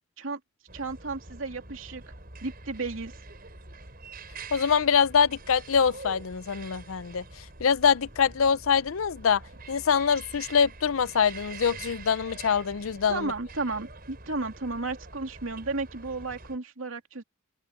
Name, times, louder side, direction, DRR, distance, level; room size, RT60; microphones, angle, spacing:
sound 1, 0.7-16.6, right 3 dB, 45° right, 6.5 m, -45 dB
voice 1, 0.7-2.0 2.4-3.1 13.1-17.2, right 3 dB, 75° right, 2.7 m, -33 dB
voice 2, 4.5-7.2 7.6-9.4 9.7-13.3, left 6 dB, 90° left, 0.6 m, -24 dB
head